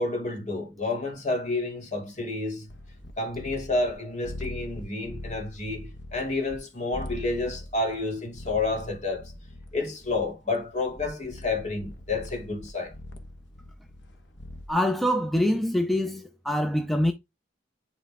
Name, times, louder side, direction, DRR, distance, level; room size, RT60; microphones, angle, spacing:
voice 1, 0.0-2.7 3.2-9.3 9.7-12.9, left 2 dB, 40° left, 2.6 m, -30 dB
sound 1, 2.7-3.9 4.2-6.6 6.9-14.7, left 1 dB, 80° left, 1.2 m, -42 dB
voice 2, 14.7-17.1, left 1 dB, ahead, 0.5 m, -25 dB
11.0 x 4.2 x 3.6 m
head